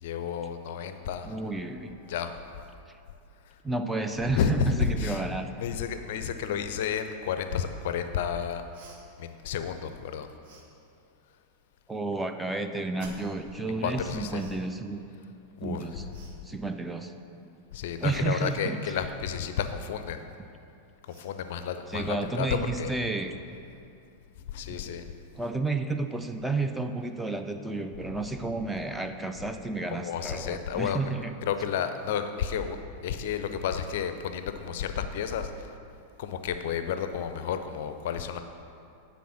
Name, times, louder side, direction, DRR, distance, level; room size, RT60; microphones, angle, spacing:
voice 1, 0.0-1.4 2.0-2.6 3.5-3.6 4.3-5.3 5.6-8.6 9.2-10.3 13.8-14.4 15.6-15.9 17.7-20.2 21.1-22.9 24.5-25.1 29.9-31.0 31.4-32.8 33.0-35.7 36.2-38.4, left 8 dB, 55° left, 9 dB, 0.4 m, -31 dB
voice 2, 1.3-2.0 3.6-5.5 11.9-15.0 15.6-16.1 16.4-17.1 18.0-18.8 21.9-23.3 24.7-24.9 25.4-31.3, right 3 dB, 5° right, 6 dB, 0.4 m, -31 dB
Cough, 8.7-9.0 10.4-10.7 13.0-13.4 14.3-14.6 16.1-16.4 18.3-18.6 20.5-20.6 21.0-21.3, right 2 dB, 50° right, 1.0 m, -50 dB
9.2 x 4.1 x 5.8 m, 2.6 s
figure-of-eight pair, 90°, 0 cm